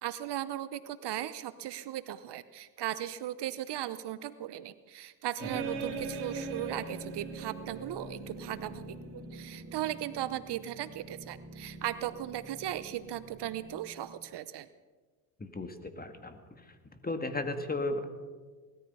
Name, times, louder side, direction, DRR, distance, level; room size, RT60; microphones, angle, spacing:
voice 1, 0.0-14.7, right 12 dB, 55° right, 15 dB, 0.8 m, -37 dB
sound 1, 5.4-14.3, right 3 dB, 80° right, 3.3 m, -42 dB
voice 2, 15.4-16.4 17.0-18.0, left 2 dB, 20° left, 7 dB, 2.0 m, -35 dB
19.0 x 13.5 x 5.6 m, 1.4 s
supercardioid pair, 75°, 49 cm